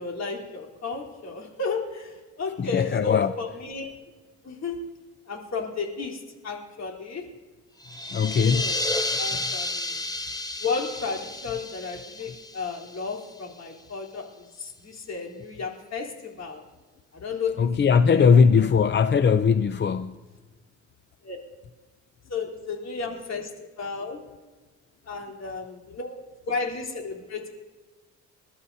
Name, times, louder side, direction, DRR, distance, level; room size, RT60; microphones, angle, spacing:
voice 1, 0.0-3.8 4.4-4.8 5.3-7.2 8.5-8.8 9.2-10.0 10.6-16.6 17.1-17.7 18.1-18.7 21.2-21.4 22.3-23.5 23.8-24.2 25.1-26.2 26.5-27.5, left 4 dB, 60° left, 3.6 m, -33 dB
voice 2, 2.6-3.3 8.1-8.6 17.6-20.1, left 6 dB, 35° left, 0.5 m, -19 dB
sound 1, 7.8-13.4, left 2 dB, 10° left, 0.9 m, -31 dB
28.0 x 13.0 x 2.7 m
cardioid pair, 90°, 30 cm